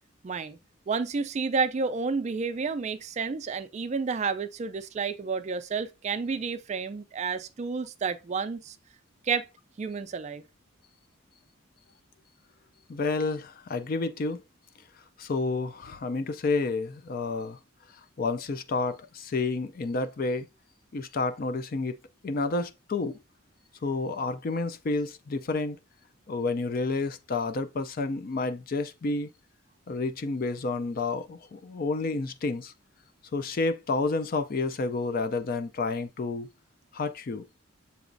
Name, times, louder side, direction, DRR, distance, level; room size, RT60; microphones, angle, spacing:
voice 1, 0.2-0.6 0.9-8.8 9.2-9.5 9.8-10.4, right 5 dB, 35° right, 0.3 m, -30 dB
voice 2, 12.9-14.4 15.2-17.6 18.2-20.5 20.9-22.0 22.2-23.2 23.8-25.8 26.3-29.3 29.9-32.7 33.3-36.5 36.9-37.5, left 3 dB, 45° left, 0.4 m, -30 dB
6.9 x 3.0 x 2.6 m
head